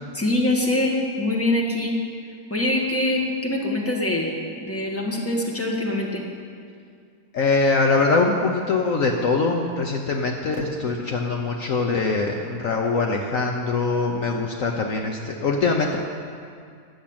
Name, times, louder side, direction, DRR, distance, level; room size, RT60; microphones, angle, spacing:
voice 1, 0.1-2.0 2.5-4.3 4.6-6.2, left 1 dB, 10° left, -2 dB, 1.5 m, -24 dB
voice 2, 7.3-16.0, left 3 dB, 60° left, 1 dB, 1.1 m, -23 dB
12.0 x 7.3 x 8.7 m, 2.3 s
omnidirectional pair, 1.7 m